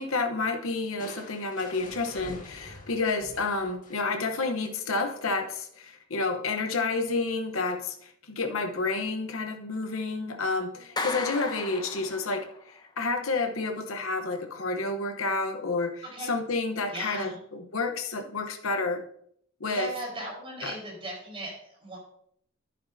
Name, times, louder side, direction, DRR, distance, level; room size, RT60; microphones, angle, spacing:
voice 1, 0.0-19.0 19.6-19.9 20.6-20.7, left 3 dB, 65° left, 5 dB, 1.0 m, -30 dB
Crushing, 1.0-4.4, left 1 dB, 35° left, 1.7 m, -46 dB
Clapping, 11.0-12.6, left 3 dB, 20° left, 0.8 m, -35 dB
voice 2, 16.9-17.4 19.7-22.0, right 2 dB, 25° right, -3 dB, 4.3 m, -38 dB
10.5 x 9.0 x 2.7 m, 0.68 s
head